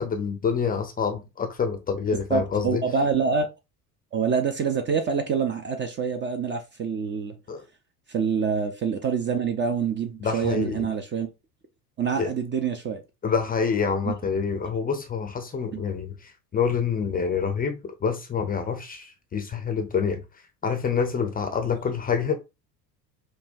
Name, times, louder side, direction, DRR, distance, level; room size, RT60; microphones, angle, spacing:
voice 1, 0.0-2.8 7.5-7.6 10.2-10.9 12.2-12.3 13.2-20.2 20.6-22.4, left 6 dB, 20° left, 0.6 m, -27 dB
voice 2, 2.3-3.5 4.1-7.4 8.1-11.3 12.0-13.0 14.0-14.1 15.7-15.8 21.7-21.8, right 6 dB, 25° right, 0.5 m, -26 dB
5.3 x 2.2 x 2.6 m
figure-of-eight pair, 65°, 49 cm